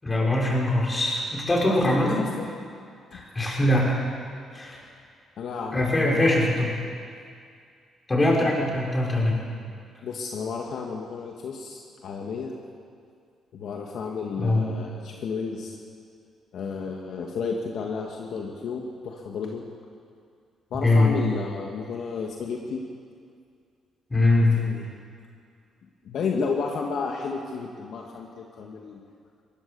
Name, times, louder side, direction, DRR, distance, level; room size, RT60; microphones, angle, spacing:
voice 1, 0.0-2.2 3.1-4.0 4.5-4.8 5.7-6.7 8.1-9.4 14.4-14.7 20.8-21.2 24.1-24.5, left 1 dB, 20° left, -2 dB, 6.4 m, -22 dB
voice 2, 1.7-2.5 3.1-3.2 5.4-6.3 10.0-12.5 13.5-15.8 16.5-19.6 20.7-22.8 24.4-24.9 26.0-29.0, left 5 dB, 70° left, 0 dB, 2.0 m, -32 dB
21.5 x 17.0 x 7.1 m, 2.3 s
cardioid pair, 90°, 0 cm